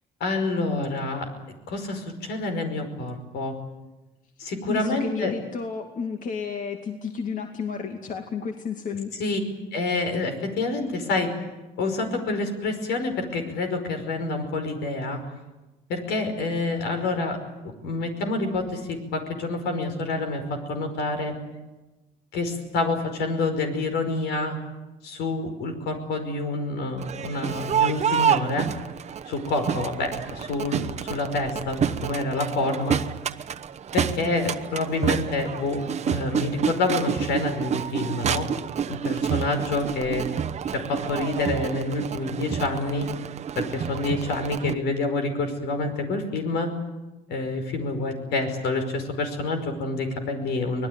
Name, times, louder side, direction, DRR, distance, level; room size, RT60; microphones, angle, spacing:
voice 1, 0.2-1.3 1.7-3.5 4.4-5.3 9.2-9.4 9.7-11.3 11.8-15.2 15.9-21.4 22.3-24.6 25.0-28.7 29.3-33.0 33.9-38.5 38.9-40.3 40.7-43.1 43.6-46.7 47.3-50.9, left 2 dB, 80° left, 6 dB, 5.3 m, -27 dB
voice 2, 4.4-9.1, left 5 dB, 50° left, 4 dB, 2.4 m, -32 dB
Crowd, 27.0-44.7, right 8 dB, 40° right, 1.0 m, -29 dB
25.0 x 19.5 x 9.6 m, 1.1 s
cardioid pair, 110°, 17 cm